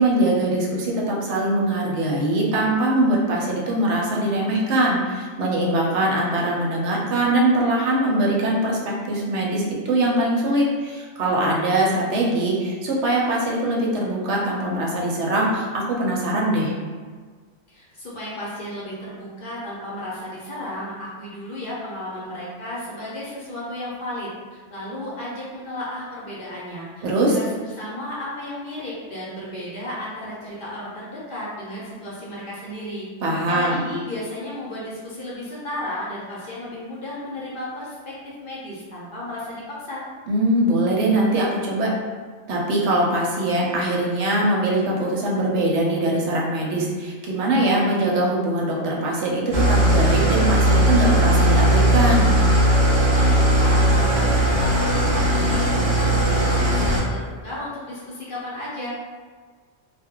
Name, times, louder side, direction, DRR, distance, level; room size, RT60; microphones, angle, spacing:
voice 1, 0.0-8.8 9.1-16.7 27.0-27.4 33.2-33.8 40.3-41.9 42.5-52.3, right 1 dB, 75° right, -3 dB, 0.9 m, -22 dB
voice 2, 17.7-27.5 27.8-33.1 33.5-40.0 52.9-58.9, left 1 dB, 50° left, -7 dB, 0.7 m, -34 dB
Engine starting / Idling, 49.5-57.0, right 1 dB, 45° right, 0.5 m, -18 dB
2.2 x 2.1 x 3.6 m, 1.5 s
omnidirectional pair, 1.2 m